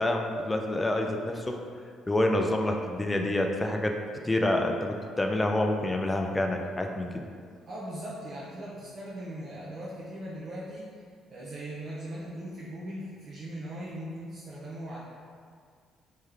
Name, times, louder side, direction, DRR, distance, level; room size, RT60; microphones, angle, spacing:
voice 1, 0.0-1.6 2.1-4.0 4.2-7.1, left 1 dB, 20° left, 3 dB, 0.4 m, -27 dB
voice 2, 7.7-11.0 11.3-15.0, right 1 dB, 60° right, -8 dB, 0.6 m, -39 dB
3.2 x 2.2 x 3.3 m, 2.1 s
supercardioid pair, 60°, 0 cm